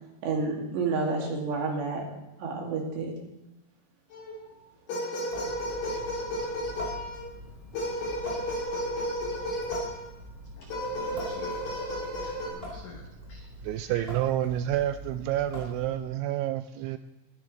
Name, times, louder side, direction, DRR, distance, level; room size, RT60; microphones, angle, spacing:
voice 1, 0.2-2.1 2.4-3.1, right 4 dB, 65° right, -1 dB, 4.5 m, -29 dB
sound 1, 4.1-4.5 4.9-7.3 7.7-10.0 10.7-12.5, equal, 65° left, 6.2 m, -33 dB
Water tap faucet / Sink (filling or washing) / Drip, 5.3-16.2, equal, 15° right, 3.3 m, -44 dB
voice 2, 10.6-13.0 13.3-13.5 13.7-14.1, left 4 dB, 85° left, 2 dB, 1.9 m, -50 dB
voice 3, 13.6-17.0, right 13 dB, 85° right, 10 dB, 2.7 m, -29 dB
22.0 x 10.5 x 3.3 m, 1.0 s
omnidirectional pair, 5.7 m